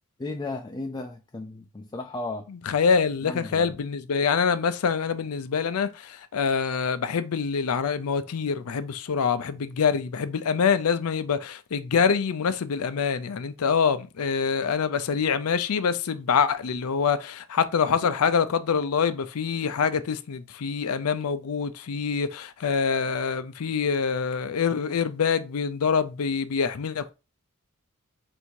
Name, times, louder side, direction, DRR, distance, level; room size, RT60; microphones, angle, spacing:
voice 1, 0.2-2.4 3.2-3.7, left 2 dB, 20° left, 0.4 m, -35 dB
voice 2, 2.5-27.1, left 6 dB, 85° left, 0.5 m, -25 dB
3.4 x 2.7 x 4.5 m
head